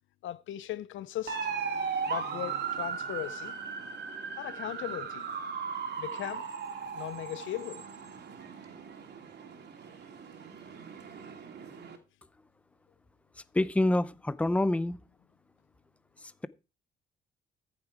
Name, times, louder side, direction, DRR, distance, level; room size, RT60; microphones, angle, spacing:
voice 1, 0.2-1.5 2.1-3.5 4.3-5.3 6.0-6.5 6.9-7.8, left 13 dB, 75° left, 0.7 m, -38 dB
sound 1, 1.3-12.0, right 6 dB, 55° right, 2.8 m, -37 dB
voice 2, 13.5-15.0, left 1 dB, 5° left, 0.6 m, -26 dB
14.0 x 6.8 x 4.8 m
cardioid pair, 90°, 20 cm